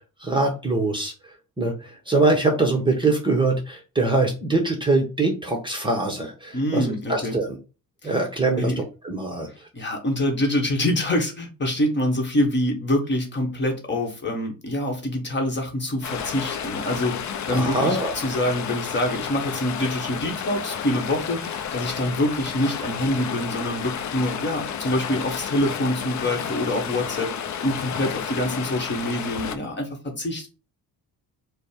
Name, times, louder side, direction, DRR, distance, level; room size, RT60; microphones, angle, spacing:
voice 1, 0.2-7.6 8.0-9.7 17.5-18.1, right 2 dB, 15° right, 1 dB, 0.8 m, -23 dB
voice 2, 6.5-7.4 8.0-8.1 8.6-8.8 9.7-27.3 27.6-30.5, left 1 dB, 30° left, 3 dB, 1.1 m, -25 dB
Stream, 16.0-29.6, left 8 dB, 55° left, 0.5 m, -31 dB
5.0 x 2.1 x 4.8 m, 0.32 s
cardioid pair, 150°, 36 cm